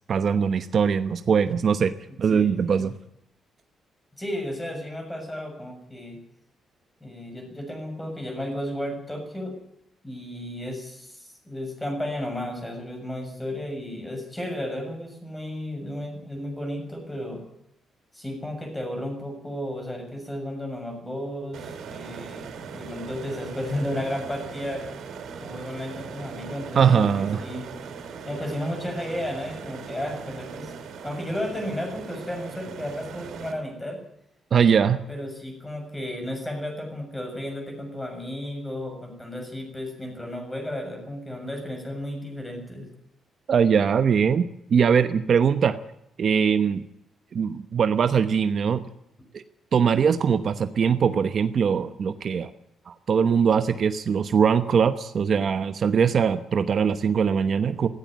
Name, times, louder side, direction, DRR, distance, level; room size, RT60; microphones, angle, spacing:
voice 1, 0.1-1.9 2.2-2.9 26.7-27.4 34.5-35.0 43.5-45.8 46.2-46.8 47.3-48.8 49.3-49.4 49.7-52.5 52.9-57.9, right 7 dB, 45° right, 10 dB, 1.0 m, -21 dB
voice 2, 2.3-2.8 4.2-6.2 7.0-9.6 10.0-17.4 18.1-22.5 22.7-24.9 25.3-27.6 28.2-30.7 31.0-34.0 35.1-42.9, left 1 dB, 10° left, 3 dB, 7.2 m, -33 dB
sound 1, 21.5-33.5, right 6 dB, 70° right, 4.5 m, -39 dB
17.0 x 17.0 x 9.2 m, 0.80 s
cardioid pair, 150°, 0 cm